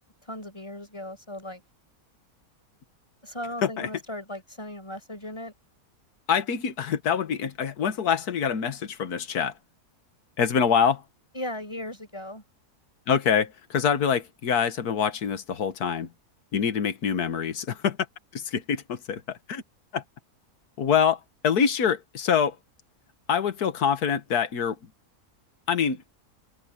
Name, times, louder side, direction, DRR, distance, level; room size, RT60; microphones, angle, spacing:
voice 1, 0.3-1.6 3.2-5.5 11.3-12.4, left 1 dB, 15° left, 6.4 m, -37 dB
voice 2, 6.3-9.5 10.4-11.0 13.1-16.1 16.5-18.0 18.3-19.6 19.9-20.0 20.8-22.6 23.3-24.8 25.7-26.0, left 7 dB, 75° left, 1.9 m, -25 dB
open air
omnidirectional pair, 1.6 m